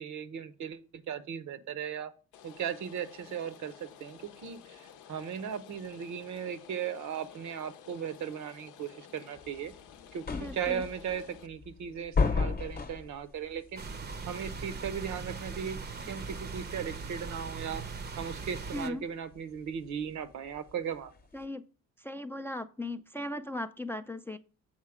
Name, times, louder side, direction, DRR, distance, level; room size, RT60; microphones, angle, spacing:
voice 1, 0.0-2.1 2.4-9.7 10.1-13.9 14.3-15.8 16.1-17.8 18.2-21.1, right 8 dB, 70° right, 12 dB, 0.8 m, -37 dB
Rain, 2.3-11.5, left 9 dB, 85° left, 0.6 m, -53 dB
sound 1, 9.4-21.4, left 4 dB, 30° left, 0.8 m, -36 dB
voice 2, 10.3-10.8 18.7-19.0 21.3-21.6 22.0-24.4, left 1 dB, 10° left, 8 dB, 0.3 m, -37 dB
sound 2, 13.8-18.9, right 4 dB, 35° right, 0.6 m, -40 dB
7.3 x 4.0 x 4.9 m, 0.37 s
cardioid pair, 90°, 30 cm